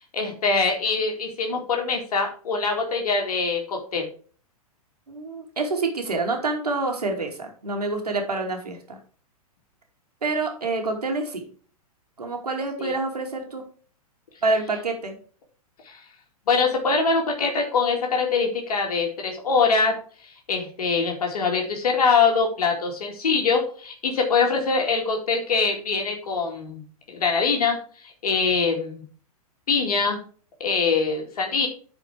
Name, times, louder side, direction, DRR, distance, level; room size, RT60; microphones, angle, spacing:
voice 1, 0.1-4.1 12.8-12.9 15.9-16.0 16.5-19.9 20.5-26.8 27.1-27.8 28.2-29.0 29.7-30.2 30.6-31.7, left 4 dB, 75° left, 1 dB, 2.3 m, -23 dB
voice 2, 5.1-9.0 10.2-11.4 12.2-13.6 14.4-15.2, right 3 dB, 90° right, 3 dB, 2.4 m, -27 dB
10.0 x 5.1 x 4.5 m, 0.42 s
hypercardioid pair, 110°, 20 cm